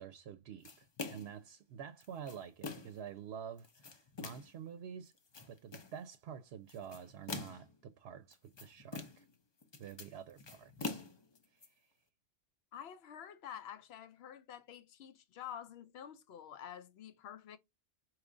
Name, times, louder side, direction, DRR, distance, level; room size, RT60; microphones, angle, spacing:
voice 1, 0.0-5.1 5.5-9.3 9.8-11.0 11.5-11.9, right 8 dB, 75° right, 0.8 m, -48 dB
sound 1, 0.6-1.4 2.0-3.0 3.6-4.6 5.1-6.0 6.7-7.8 8.3-9.3 9.6-11.7, left 4 dB, 35° left, 0.5 m, -45 dB
voice 2, 12.7-17.6, left 9 dB, 75° left, 0.9 m, -49 dB
4.8 x 3.0 x 2.5 m
omnidirectional pair, 1.1 m